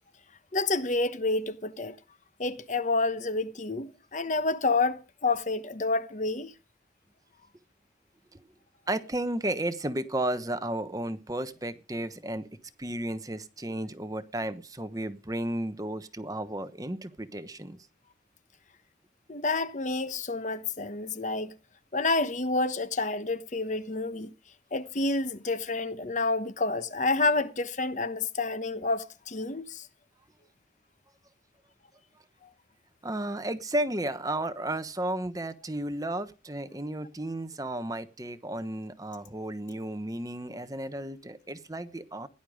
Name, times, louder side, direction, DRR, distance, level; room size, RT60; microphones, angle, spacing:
voice 1, 0.5-2.0 2.4-6.5 19.3-21.5 21.9-24.3 24.7-29.9, left 3 dB, 40° left, 1.0 m, -29 dB
voice 2, 8.9-12.5 12.8-17.8 33.0-42.3, right 1 dB, 20° right, 1.1 m, -33 dB
17.0 x 11.0 x 5.0 m
head